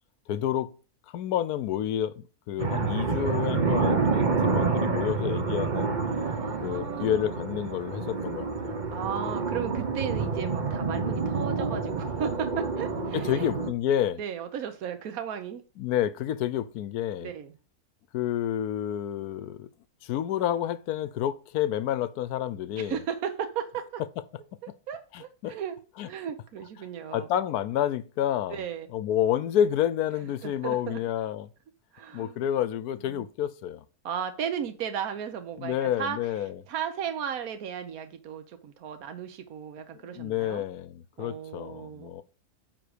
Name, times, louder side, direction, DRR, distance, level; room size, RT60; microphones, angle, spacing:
voice 1, 0.3-0.7 1.1-5.9 6.6-8.7 13.1-14.2 15.8-17.3 18.1-19.7 20.0-23.0 25.1-25.5 26.0-26.1 27.1-28.6 28.9-31.5 32.1-33.8 35.6-36.6 40.0-42.2, left 10 dB, 80° left, 1.1 m, -29 dB
sound 1, 2.6-13.7, right 4 dB, 35° right, 0.9 m, -28 dB
voice 2, 6.2-7.3 8.9-13.5 14.2-15.6 17.2-17.5 22.8-24.0 24.6-25.8 26.0-27.3 28.5-28.9 30.4-31.0 31.9-32.5 33.0-33.2 34.0-36.2 36.7-40.6 41.2-42.2, right 8 dB, 70° right, 1.3 m, -35 dB
9.4 x 3.9 x 5.0 m
omnidirectional pair, 1.6 m